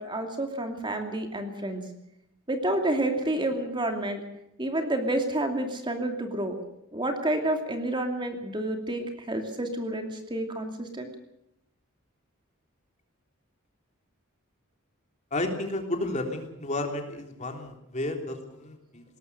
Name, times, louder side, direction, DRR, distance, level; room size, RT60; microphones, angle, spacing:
voice 1, 0.0-1.9 2.5-4.2 4.6-6.6 6.9-11.1, right 1 dB, 25° right, 4 dB, 2.6 m, -29 dB
voice 2, 15.3-19.0, left 2 dB, 35° left, 3 dB, 3.4 m, -32 dB
21.0 x 18.5 x 6.7 m, 0.82 s
head